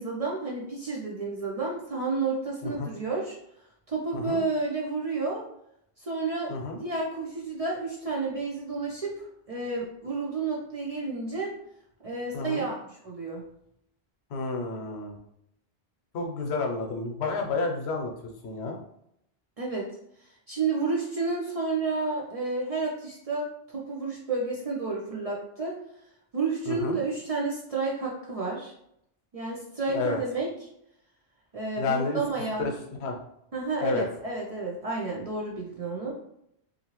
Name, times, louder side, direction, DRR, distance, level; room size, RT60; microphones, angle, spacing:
voice 1, 0.0-3.4 3.9-5.5 6.0-6.5 6.8-11.5 12.0-13.4 19.6-19.9 20.5-25.8 26.3-28.7 29.3-30.5 31.5-32.7 33.5-36.1, right 3 dB, 50° right, -3 dB, 0.4 m, -31 dB
voice 2, 12.3-12.7 14.3-15.2 16.1-18.1 18.4-18.8 26.7-27.0 29.9-30.2 31.8-32.2 32.6-32.7 33.0-33.1 33.8-34.1, left 3 dB, 85° left, 2 dB, 0.9 m, -30 dB
2.7 x 2.5 x 2.9 m, 0.76 s
omnidirectional pair, 1.1 m